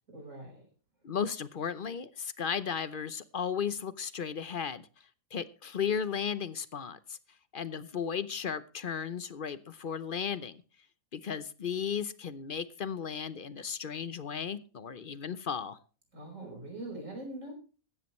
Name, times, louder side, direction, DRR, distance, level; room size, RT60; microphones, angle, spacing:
voice 1, 0.1-0.6 16.1-17.5, right 2 dB, 65° right, 5.5 m, -42 dB
voice 2, 1.0-4.9 5.3-7.2 7.5-10.6 11.1-15.8, left 7 dB, 45° left, 0.8 m, -35 dB
15.5 x 12.5 x 3.1 m
omnidirectional pair, 1.4 m